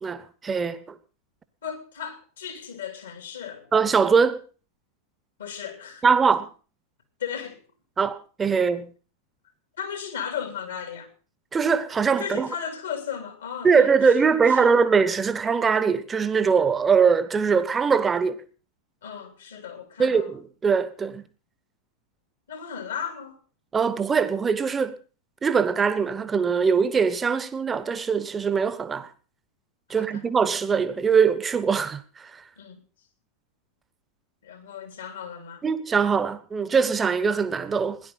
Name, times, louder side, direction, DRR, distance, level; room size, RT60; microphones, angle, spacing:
voice 1, 0.0-0.8 3.7-4.4 6.0-6.5 8.0-8.9 11.5-12.5 13.6-18.4 20.0-21.2 23.7-25.0 25.4-29.1 29.9-32.0 35.6-38.0, right 5 dB, 15° right, 1.2 m, -22 dB
voice 2, 1.6-3.7 5.4-6.1 7.2-7.6 9.8-11.1 12.2-14.8 19.0-20.3 22.5-23.4 29.9-30.2 32.6-32.8 34.4-35.6, left 8 dB, 65° left, 3.2 m, -35 dB
17.0 x 10.5 x 5.6 m
figure-of-eight pair, 90°, 0 cm